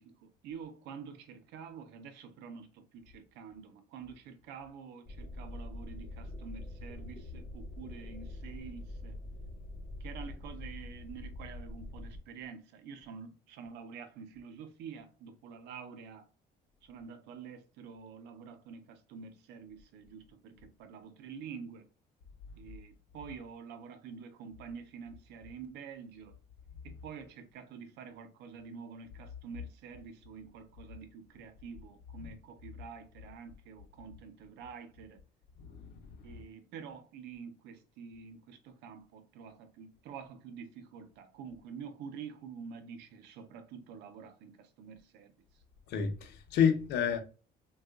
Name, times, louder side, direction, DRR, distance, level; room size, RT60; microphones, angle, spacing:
voice 1, 0.0-9.2 10.0-16.3 16.8-21.9 22.6-26.4 26.8-35.2 36.2-45.3, right 6 dB, 85° right, 0.6 m, -48 dB
sound 1, 5.1-12.2, left 1 dB, 25° left, 1.2 m, -44 dB
voice 2, 45.9-47.2, left 7 dB, 80° left, 0.6 m, -29 dB
3.6 x 2.3 x 2.3 m
cardioid pair, 110°, 17 cm